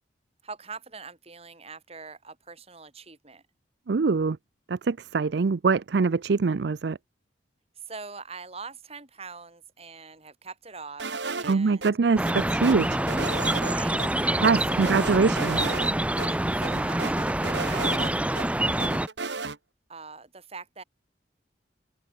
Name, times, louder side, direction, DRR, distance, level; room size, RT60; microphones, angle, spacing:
voice 1, 0.4-3.4 7.8-11.1 11.4-11.9 13.7-15.1 16.3-19.0 19.9-20.8, right 4 dB, 35° right, 4.6 m, -43 dB
voice 2, 3.9-4.4 4.7-7.0 11.5-13.0 14.4-15.6, right 4 dB, 70° right, 0.5 m, -23 dB
sound 1, 11.0-11.9 12.3-13.7 14.0-14.1 14.4-15.9 16.2-16.3 16.6-18.5 18.8-19.6, right 4 dB, 85° right, 2.2 m, -34 dB
sound 2, 12.2-19.1, right 1 dB, 5° right, 0.8 m, -26 dB
head